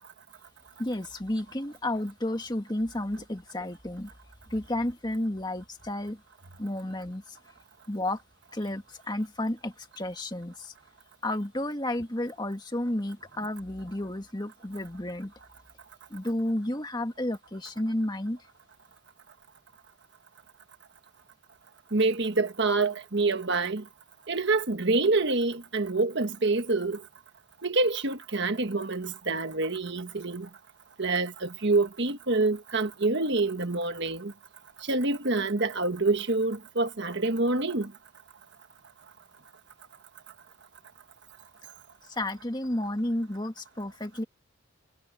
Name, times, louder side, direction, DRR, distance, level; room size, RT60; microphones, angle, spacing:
voice 1, 0.8-4.1 4.5-6.2 6.6-7.4 7.9-8.2 8.5-10.7 11.2-15.3 16.1-18.4 42.1-44.2, left 1 dB, 20° left, 2.0 m, -32 dB
voice 2, 21.9-23.8 24.3-27.0 27.6-30.5 31.0-34.3 34.8-37.9, right 3 dB, 55° right, 1.4 m, -27 dB
head